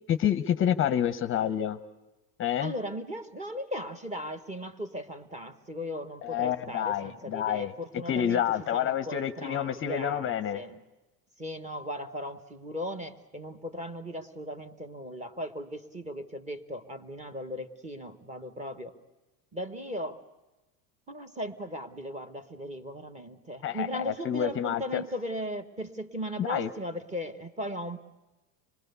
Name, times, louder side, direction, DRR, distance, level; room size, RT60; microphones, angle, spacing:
voice 1, 0.1-1.8 2.4-2.7 6.2-7.7 8.1-10.6 23.6-25.0 26.4-26.7, left 10 dB, 30° left, 11 dB, 0.7 m, -28 dB
voice 2, 2.6-10.8 11.4-18.9 19.5-20.2 21.1-28.0, equal, 15° right, 9 dB, 1.1 m, -37 dB
26.0 x 20.5 x 6.8 m, 1.1 s
supercardioid pair, 130°, 45 cm